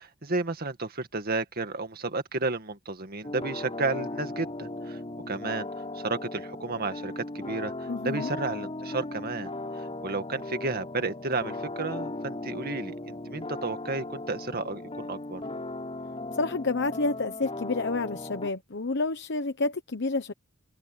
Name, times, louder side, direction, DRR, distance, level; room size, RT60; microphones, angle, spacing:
voice 1, 0.0-5.0 5.3-5.7 5.9-15.4, right 3 dB, 50° right, 2.0 m, -32 dB
sound 1, 3.2-18.5, left 2 dB, 30° left, 4.1 m, -37 dB
voice 2, 7.9-8.4 16.3-20.3, left 3 dB, 60° left, 1.0 m, -29 dB
head